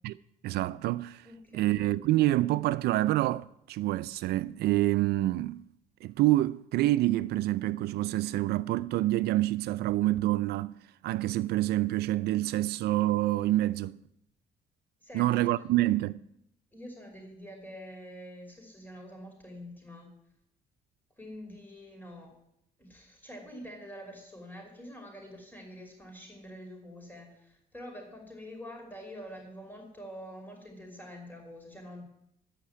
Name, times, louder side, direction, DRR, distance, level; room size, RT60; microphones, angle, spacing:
voice 1, 0.4-1.3 1.5-5.6 6.0-10.7 11.0-14.0 15.1-16.2, right 16 dB, 70° right, 0.4 m, -27 dB
voice 2, 1.2-1.7 15.0-15.5 16.7-20.1 21.2-22.3 22.8-32.0, equal, 10° left, 5.2 m, -46 dB
15.0 x 5.7 x 9.8 m
cardioid pair, 110°, 17 cm